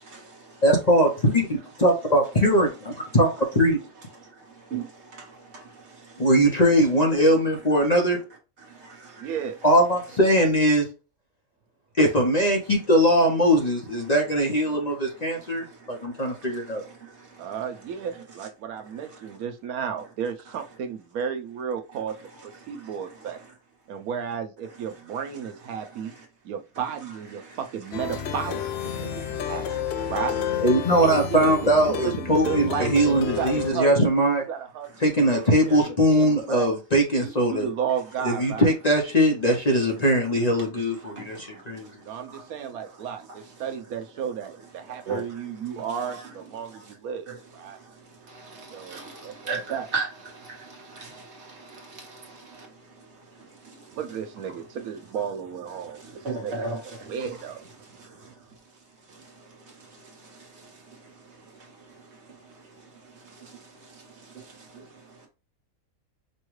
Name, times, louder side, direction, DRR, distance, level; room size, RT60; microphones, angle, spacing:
voice 1, 0.0-0.6 4.2-6.3 8.6-9.3 15.2-17.5 19.1-19.2 22.6-23.4 26.0-26.2 27.3-27.6 28.9-30.1 30.4-30.5 40.0-40.1 41.0-42.5 42.8-43.1 44.9-46.3 46.6-46.9 47.3-47.4 47.7-54.0 55.8-57.5 57.8-58.4 59.1-65.3, right 4 dB, 50° right, 1.5 m, -40 dB
voice 2, 0.6-3.8 6.2-8.2 9.6-10.9 12.0-16.8 30.6-34.4 35.0-37.7 38.2-41.9, equal, 35° left, 0.8 m, -21 dB
voice 3, 9.2-9.6 17.4-22.2 22.7-23.4 23.9-26.1 26.4-27.4 27.7-29.8 30.1-30.4 31.0-31.5 31.8-33.9 34.5-34.9 35.6-36.7 37.2-38.7 42.0-47.3 47.5-47.8 48.7-49.3 49.7-49.9 53.9-56.7 57.1-57.6, right 7 dB, 85° right, 1.2 m, -33 dB
Plucked string instrument, 27.9-33.7, left 9 dB, 65° left, 0.6 m, -31 dB
5.4 x 2.3 x 3.1 m
omnidirectional pair, 1.5 m